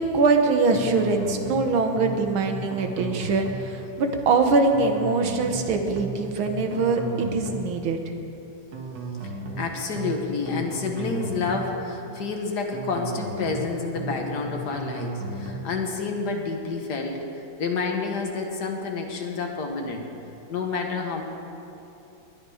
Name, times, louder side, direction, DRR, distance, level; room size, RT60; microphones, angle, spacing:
voice 1, 0.0-8.0, right 3 dB, 80° right, 5 dB, 2.0 m, -23 dB
sound 1, 0.7-1.7 2.0-2.2 2.5-3.7 4.7-5.7 6.0-6.2 6.5-7.7 8.7-9.7 10.0-10.2 10.5-11.7 12.7-13.7 14.0-14.2 14.5-15.7, right 2 dB, 60° right, 1.9 m, -34 dB
voice 2, 9.6-20.1 20.5-21.2, left 4 dB, 55° left, 2 dB, 1.9 m, -29 dB
20.0 x 11.0 x 5.0 m, 2.8 s
omnidirectional pair, 2.2 m